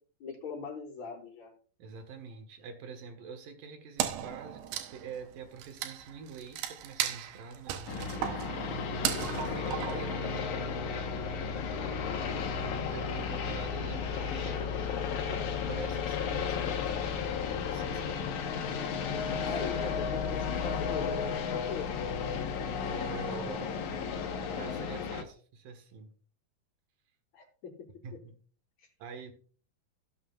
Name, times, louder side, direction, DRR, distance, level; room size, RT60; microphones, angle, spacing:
voice 1, 0.2-1.5 11.8-12.2 19.5-21.9 27.3-27.7 28.8-28.9, left 5 dB, 50° left, -1 dB, 4.7 m, -41 dB
voice 2, 1.8-10.6 12.9-14.6 15.3-17.3 17.5-18.5 19.4-19.6 21.6-21.7 22.3-22.4 22.9-23.7 24.6-26.1 28.0-28.4 29.0-29.3, right 5 dB, 65° right, 7 dB, 2.9 m, -46 dB
Wood, 4.0-10.7, right 11 dB, 85° right, 2.9 m, -36 dB
sound 1, 7.9-25.2, left 6 dB, 65° left, 2.1 m, -33 dB
17.0 x 7.6 x 2.4 m, 0.42 s
omnidirectional pair, 4.5 m